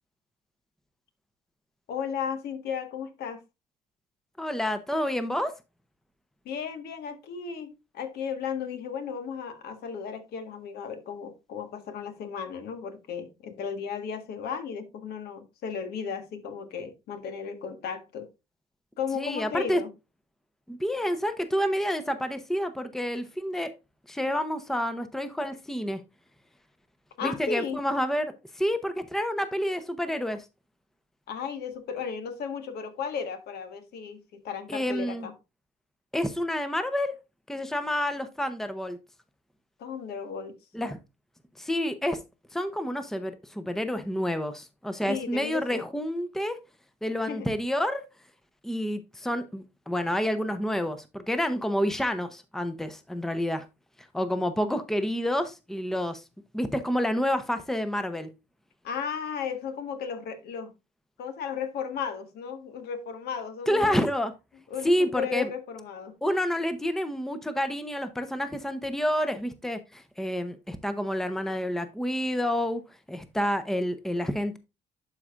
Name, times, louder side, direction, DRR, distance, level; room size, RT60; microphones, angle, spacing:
voice 1, 1.9-3.4 6.4-18.3 19.0-19.9 27.2-27.8 31.3-35.3 39.8-40.5 45.1-45.8 47.2-47.5 58.8-60.7 61.2-64.0 64.7-66.1, left 6 dB, 70° left, 1.6 m, -35 dB
voice 2, 4.4-5.5 19.2-19.8 20.7-23.7 24.1-26.0 27.2-30.4 34.7-35.3 36.1-37.1 37.5-39.0 40.7-41.0 41.6-42.2 42.5-46.6 47.0-48.0 48.6-53.7 54.1-56.2 56.5-58.3 63.7-64.3 64.8-65.5 66.2-72.8 73.1-74.6, equal, ahead, 0.8 m, -29 dB
11.5 x 4.9 x 2.5 m
cardioid pair, 110°, 17 cm